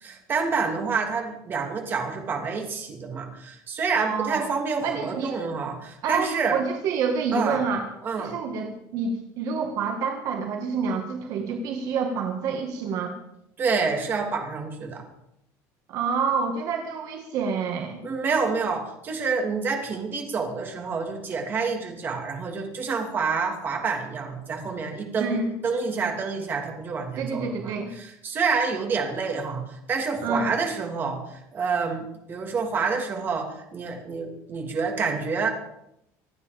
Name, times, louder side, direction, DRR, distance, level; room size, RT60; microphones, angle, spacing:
voice 1, 0.0-6.6 7.3-7.6 8.0-8.3 13.6-15.0 18.0-27.7 28.0-35.5, right 5 dB, 30° right, 3 dB, 2.8 m, -28 dB
voice 2, 4.0-4.4 4.8-5.4 6.0-7.9 8.2-13.2 15.9-18.0 25.2-25.5 27.2-27.9 30.2-30.5, right 5 dB, 50° right, 4 dB, 1.8 m, -28 dB
26.0 x 9.6 x 5.2 m, 0.79 s
cardioid pair, 165°, 7 cm